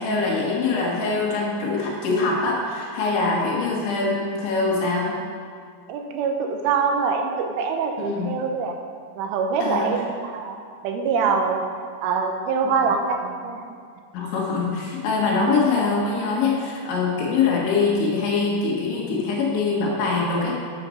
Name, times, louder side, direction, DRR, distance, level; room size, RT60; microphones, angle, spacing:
voice 1, 0.0-5.2 8.0-8.3 9.6-9.9 14.1-20.6, left 4 dB, 75° left, -3 dB, 4.0 m, -23 dB
voice 2, 5.9-8.8 9.2-10.6 10.8-11.6 12.0-13.6, right 5 dB, 85° right, 4 dB, 3.4 m, -24 dB
9.1 x 7.6 x 6.8 m, 2.1 s
omnidirectional pair, 5.6 m